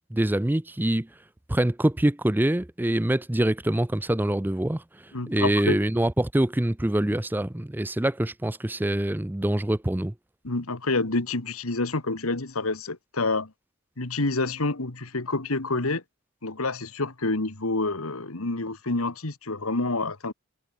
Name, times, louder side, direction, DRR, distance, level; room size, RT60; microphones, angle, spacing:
voice 1, 0.1-1.1 1.5-10.1, right 1 dB, 10° right, 0.5 m, -25 dB
voice 2, 5.1-5.8 10.4-13.5 14.0-16.0 16.4-20.3, left 2 dB, 80° left, 1.9 m, -28 dB
head